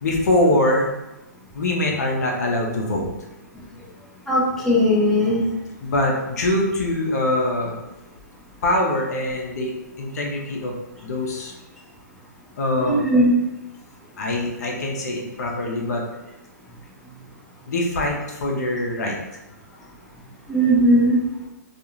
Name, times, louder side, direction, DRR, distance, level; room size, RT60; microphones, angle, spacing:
voice 1, 0.0-1.0 1.5-3.1 5.8-7.8 8.6-10.8 11.0-11.5 12.6-13.0 14.2-16.0 17.7-19.2, left 1 dB, 65° left, -1 dB, 0.7 m, -23 dB
voice 2, 4.3-5.4 12.9-13.3 20.5-21.2, equal, 5° left, -8 dB, 0.7 m, -18 dB
2.4 x 2.3 x 3.0 m, 0.97 s
hypercardioid pair, 135°, 10 cm